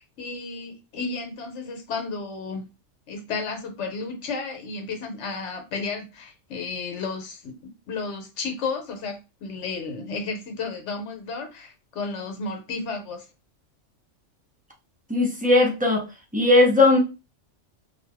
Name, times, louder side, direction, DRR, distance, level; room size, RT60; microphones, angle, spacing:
voice 1, 0.0-2.7 3.1-13.3, left 4 dB, 70° left, 5 dB, 1.1 m, -33 dB
voice 2, 15.1-16.0 16.3-17.0, left 2 dB, 10° right, -1 dB, 0.4 m, -18 dB
2.8 x 2.4 x 3.3 m, 0.27 s
omnidirectional pair, 1.3 m